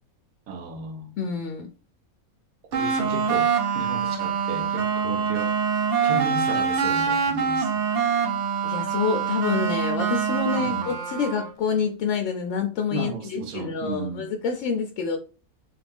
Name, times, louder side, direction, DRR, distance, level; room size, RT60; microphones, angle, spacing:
voice 1, 0.5-1.2 2.7-5.5 6.0-7.8 10.6-11.0 12.9-14.3, right 3 dB, 85° right, 1.2 m, -34 dB
voice 2, 1.2-1.7 8.6-15.2, left 6 dB, 65° left, 0.8 m, -27 dB
sound 1, 2.7-11.5, right 6 dB, 60° right, 0.9 m, -25 dB
3.8 x 2.5 x 3.4 m
omnidirectional pair, 1.5 m